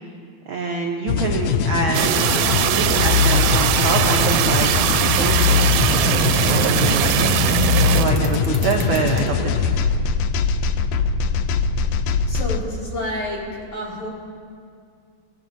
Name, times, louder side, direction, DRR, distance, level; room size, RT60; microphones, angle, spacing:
voice 1, 0.5-2.2 2.5-4.7 5.0-5.5 6.5-7.4 7.9-9.7, right 5 dB, 75° right, 1 dB, 1.2 m, -25 dB
sound 1, 1.1-12.6, left 6 dB, 80° left, 1.5 m, -21 dB
sound 2, 1.9-8.1, right 11 dB, 90° right, 2.0 m, -20 dB
sound 3, 3.8-9.3, right 6 dB, 45° right, 1.9 m, -33 dB
voice 2, 12.3-14.1, left 1 dB, 50° left, -5 dB, 3.3 m, -29 dB
20.5 x 15.0 x 2.6 m, 2.3 s
omnidirectional pair, 3.4 m